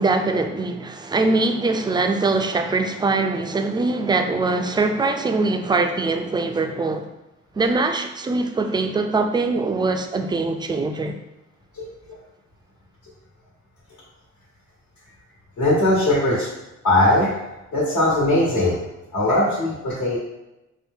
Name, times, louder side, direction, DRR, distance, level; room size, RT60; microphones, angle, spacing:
voice 1, 0.0-7.1 7.6-11.2, right 3 dB, 15° right, 0.3 m, -22 dB
voice 2, 15.6-16.5 16.8-17.3 17.7-18.8 19.1-20.2, left 1 dB, 75° left, 1.4 m, -19 dB
4.3 x 2.2 x 3.5 m
cardioid pair, 90°, 30 cm